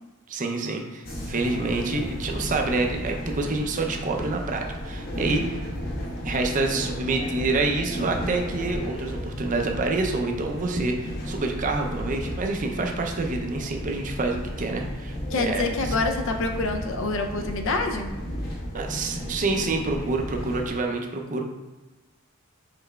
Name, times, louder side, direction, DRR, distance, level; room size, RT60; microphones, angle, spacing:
voice 1, 0.3-5.6 6.2-16.0 18.7-21.4, right 3 dB, 35° right, 3 dB, 0.4 m, -27 dB
sound 1, 1.0-20.7, equal, 45° left, 0.9 m, -33 dB
voice 2, 15.3-18.1, left 3 dB, 60° left, 5 dB, 0.4 m, -26 dB
5.7 x 3.2 x 2.2 m, 1.1 s
head